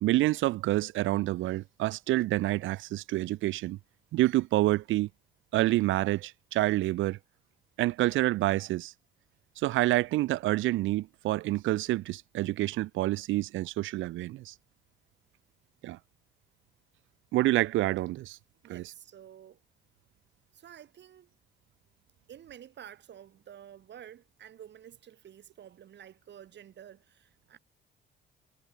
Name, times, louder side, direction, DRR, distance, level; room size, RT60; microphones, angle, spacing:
voice 1, 0.0-3.8 4.1-5.1 5.5-7.2 7.8-8.9 9.6-14.5 15.8-16.0 17.3-18.4 18.7-18.8, right 17 dB, 80° right, 0.5 m, -28 dB
voice 2, 18.6-19.6 20.5-21.3 22.3-27.6, right 10 dB, 65° right, 2.4 m, -50 dB
cardioid pair, 90°, 20 cm